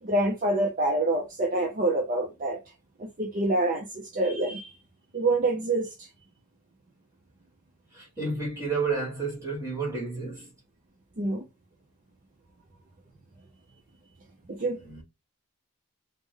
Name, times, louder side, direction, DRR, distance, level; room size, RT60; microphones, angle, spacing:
voice 1, 0.0-2.6 3.0-4.8 5.1-6.1 11.2-11.4 14.5-15.0, right 2 dB, 35° right, 0.4 m, -27 dB
voice 2, 7.9-10.5 14.8-15.0, right 4 dB, 10° right, 1.6 m, -31 dB
3.5 x 2.1 x 3.2 m
head